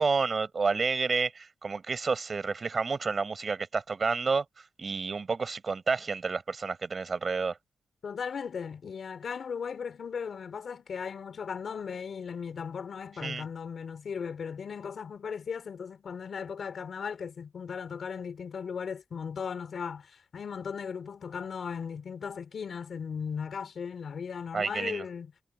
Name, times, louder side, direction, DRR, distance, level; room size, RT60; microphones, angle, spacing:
voice 1, 0.0-4.4 4.8-7.6 13.2-13.4 24.5-25.0, right 4 dB, 40° right, 5.4 m, -30 dB
voice 2, 8.0-25.3, left 6 dB, 60° left, 4.2 m, -37 dB
cardioid pair, 100°, 0 cm